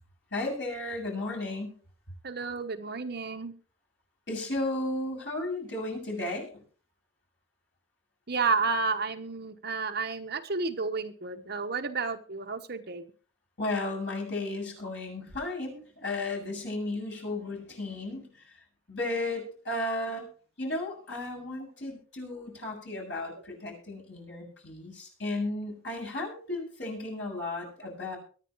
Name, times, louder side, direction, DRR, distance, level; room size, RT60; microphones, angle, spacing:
voice 1, 0.3-1.7 4.3-6.6 13.6-18.3 18.9-20.3 20.6-28.2, left 2 dB, 60° left, -1 dB, 7.4 m, -34 dB
voice 2, 2.2-3.5 8.3-13.0, right 4 dB, 50° right, 6 dB, 1.2 m, -31 dB
23.5 x 9.6 x 3.2 m, 0.40 s
head